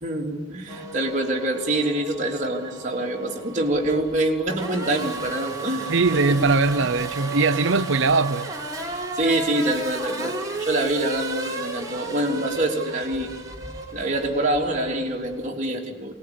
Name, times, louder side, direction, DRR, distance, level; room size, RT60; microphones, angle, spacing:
voice 1, 0.0-6.2 9.2-13.3 13.9-16.1, right 1 dB, 40° right, 3.6 m, -25 dB
Race car auto racing / Accelerating revving vroom, 0.7-15.5, right 3 dB, 20° right, 3.7 m, -34 dB
voice 2, 5.9-8.5, right 3 dB, 70° right, 0.8 m, -21 dB
25.5 x 20.5 x 9.9 m
head